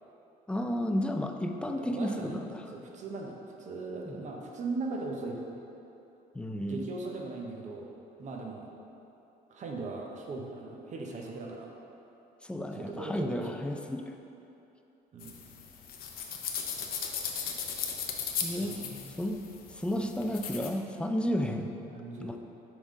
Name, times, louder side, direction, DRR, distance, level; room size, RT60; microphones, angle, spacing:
voice 1, 0.5-2.6 4.0-4.3 6.3-6.8 12.4-14.0 18.4-18.8 19.2-19.4 19.7-21.7 22.2-22.4, equal, 5° left, 4 dB, 0.4 m, -32 dB
voice 2, 1.7-2.4 2.7-5.6 6.7-7.9 8.2-8.7 9.5-11.7 12.8-13.6 15.1-15.4 16.9-17.3 18.6-19.2 21.9-22.4, right 3 dB, 45° right, 0 dB, 0.8 m, -39 dB
sound 1, 15.2-20.7, left 7 dB, 60° left, 0.7 m, -37 dB
6.1 x 3.7 x 5.1 m, 2.9 s
cardioid pair, 110°, 17 cm